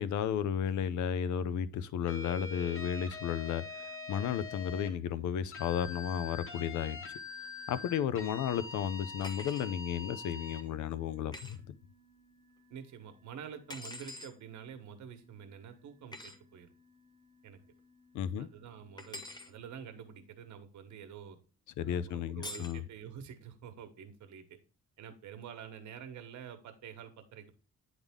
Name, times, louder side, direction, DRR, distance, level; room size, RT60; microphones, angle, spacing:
voice 1, 0.0-3.6 4.1-7.0 7.7-11.6 18.1-18.5 21.8-22.8, left 9 dB, 85° left, 0.6 m, -33 dB
sound 1, 2.1-4.9 5.5-10.7, left 4 dB, 45° left, 1.3 m, -44 dB
sound 2, 2.4-20.3, left 1 dB, 20° right, 1.2 m, -66 dB
sound 3, 9.2-9.7 11.3-11.6 13.7-14.3 16.1-16.4 19.0-19.5 22.4-22.8, left 2 dB, 15° left, 0.8 m, -45 dB
voice 2, 12.7-16.7 17.4-17.6 18.4-21.4 21.8-24.4 25.0-27.5, right 8 dB, 75° right, 1.3 m, -48 dB
9.7 x 3.6 x 3.6 m
cardioid pair, 130°, 29 cm